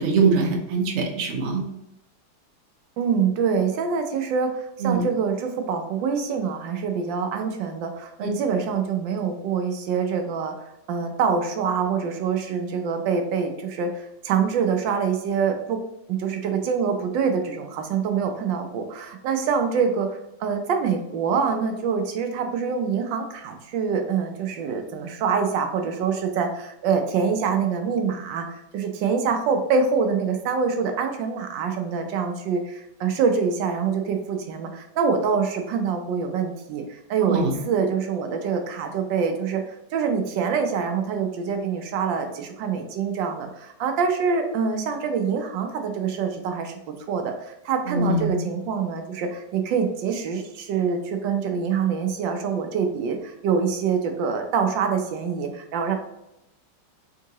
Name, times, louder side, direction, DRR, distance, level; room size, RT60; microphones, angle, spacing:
voice 1, 0.0-1.6 4.8-5.0 8.2-8.3 37.3-37.5 47.9-48.3, right 4 dB, 60° right, 0 dB, 0.7 m, -22 dB
voice 2, 3.0-10.5 10.9-15.8 16.1-55.9, right 6 dB, 75° right, 5 dB, 1.2 m, -25 dB
3.8 x 3.6 x 2.8 m, 0.85 s
omnidirectional pair, 2.2 m